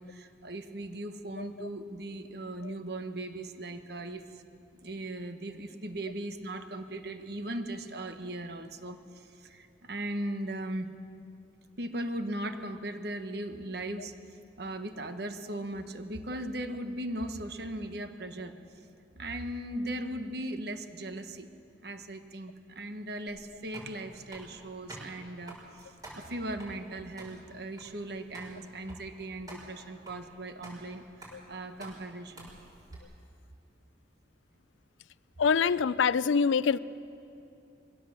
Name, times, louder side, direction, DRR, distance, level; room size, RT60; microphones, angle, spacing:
voice 1, 0.0-4.4 4.8-10.9 11.8-14.1 14.6-18.5 19.2-21.5 21.8-32.5, right 1 dB, 55° right, 8 dB, 1.2 m, -38 dB
sound 1, 23.3-33.0, right 1 dB, 20° right, 5.5 m, -50 dB
voice 2, 35.4-36.8, left 6 dB, 85° left, 18 dB, 0.5 m, -24 dB
22.0 x 16.5 x 7.5 m, 2.6 s
head